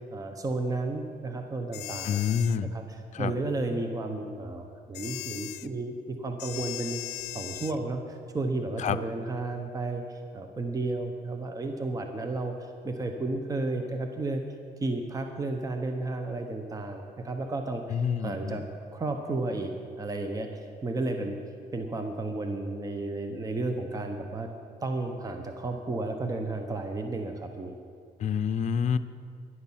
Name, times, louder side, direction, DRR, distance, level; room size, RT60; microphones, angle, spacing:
voice 1, 0.1-2.2 2.7-7.0 7.3-14.4 14.8-18.6 18.9-19.7 20.0-21.4 21.7-24.5 24.8-27.8, right 2 dB, 20° right, 5 dB, 1.0 m, -33 dB
sound 1, 1.7-2.6 4.9-5.7 6.4-7.8, left 18 dB, 90° left, 0.4 m, -38 dB
voice 2, 2.0-2.7 3.1-3.3 8.8-9.0 17.9-18.6 28.2-29.0, left 7 dB, 45° left, 11 dB, 0.6 m, -27 dB
11.0 x 10.5 x 7.3 m, 2.4 s
cardioid pair, 110°, 17 cm